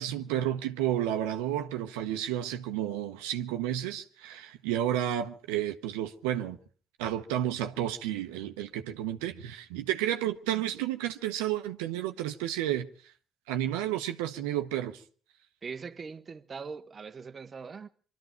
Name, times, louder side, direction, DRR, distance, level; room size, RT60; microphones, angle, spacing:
voice 1, 0.0-6.6 7.0-12.9 13.5-15.0, right 12 dB, 85° right, 0.9 m, -31 dB
voice 2, 15.6-17.9, right 5 dB, 40° right, 0.9 m, -41 dB
24.0 x 13.0 x 4.4 m
hypercardioid pair, 55°, 0 cm